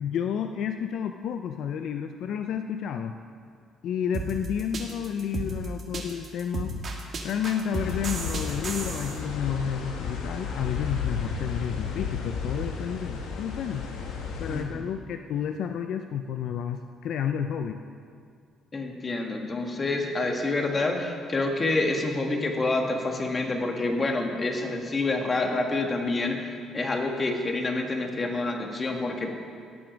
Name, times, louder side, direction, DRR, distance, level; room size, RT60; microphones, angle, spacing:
voice 1, 0.0-3.1 3.8-6.7 7.2-13.8 14.4-17.8, left 8 dB, 65° left, 7 dB, 0.4 m, -31 dB
sound 1, 4.1-9.2, right 3 dB, 40° right, 1.5 m, -33 dB
sound 2, 7.7-14.6, left 5 dB, 85° left, 1.3 m, -33 dB
voice 2, 14.5-14.8 18.7-29.3, left 2 dB, 25° left, 3 dB, 1.3 m, -28 dB
17.5 x 6.1 x 5.1 m, 2.2 s
cardioid pair, 130°, 0 cm